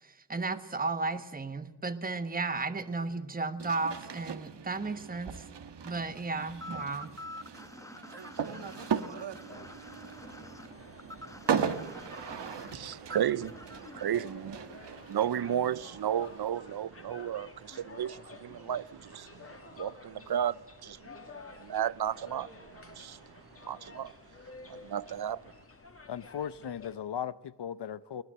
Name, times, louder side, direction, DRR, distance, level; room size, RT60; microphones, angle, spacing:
voice 1, 0.0-5.4 5.8-7.1, right 3 dB, 20° right, 1.2 m, -34 dB
sound 1, 3.6-16.5, right 7 dB, 85° right, 1.6 m, -38 dB
sound 2, 6.6-14.0, left 1 dB, 10° left, 1.1 m, -47 dB
sound 3, 9.5-27.0, left 3 dB, 35° left, 2.1 m, -51 dB
voice 2, 12.7-13.5 13.9-21.3 21.6-24.1 24.6-25.4, right 10 dB, 65° right, 0.7 m, -34 dB
voice 3, 26.1-28.2, left 8 dB, 75° left, 0.9 m, -37 dB
21.5 x 19.5 x 8.8 m
wide cardioid pair, 100°, 41 cm